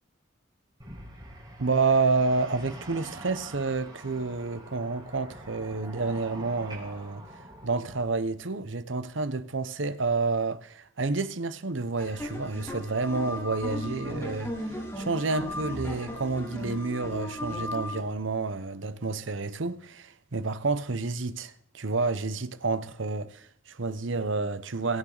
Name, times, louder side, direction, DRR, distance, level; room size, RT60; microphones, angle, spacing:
sound 1, 0.8-8.0, right 1 dB, 25° right, 5.4 m, -46 dB
voice 1, 1.6-7.3 7.6-25.0, right 3 dB, 70° right, 1.0 m, -29 dB
sound 2, 12.0-18.0, left 1 dB, 15° left, 5.9 m, -36 dB
22.0 x 8.9 x 4.1 m
head